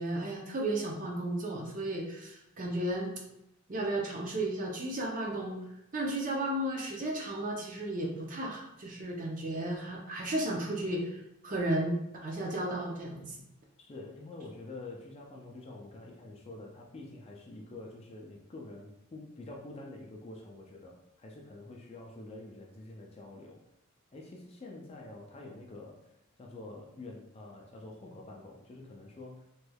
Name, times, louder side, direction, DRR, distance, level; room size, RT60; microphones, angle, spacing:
voice 1, 0.0-3.1 3.7-5.6 5.9-12.0 12.2-13.4, right 1 dB, 35° right, 0 dB, 0.5 m, -34 dB
voice 2, 13.8-23.6 24.1-26.1 26.4-29.4, left 2 dB, 25° left, 0 dB, 0.3 m, -47 dB
3.2 x 3.0 x 2.2 m, 0.82 s
head